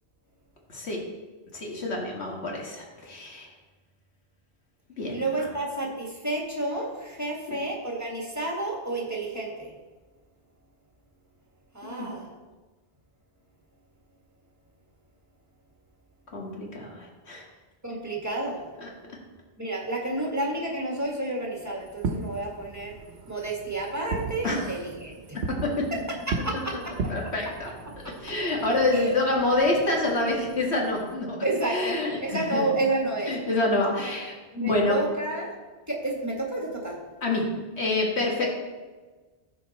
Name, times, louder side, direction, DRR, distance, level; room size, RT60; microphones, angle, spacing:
voice 1, 0.7-1.0 1.5-3.5 5.0-5.2 7.5-7.6 11.8-12.1 16.3-17.4 18.8-18.9 24.4-24.7 25.3-25.7 27.1-27.7 28.2-31.4 31.7-32.6 33.3-34.3 34.6-35.0 37.2-37.4 37.8-38.5, left 2 dB, 85° left, -1 dB, 2.1 m, -27 dB
voice 2, 5.1-9.7 11.7-12.3 17.8-18.7 19.6-23.0 23.3-25.4 25.9-27.3 28.0-28.3 28.9-29.1 31.4-33.4 34.0-34.2 34.5-35.5 35.9-37.0 38.4-38.5, right 2 dB, 15° right, -2 dB, 1.8 m, -30 dB
Fireworks, 21.9-31.1, right 3 dB, 85° right, 1.1 m, -37 dB
14.5 x 5.0 x 4.2 m, 1.3 s
omnidirectional pair, 1.1 m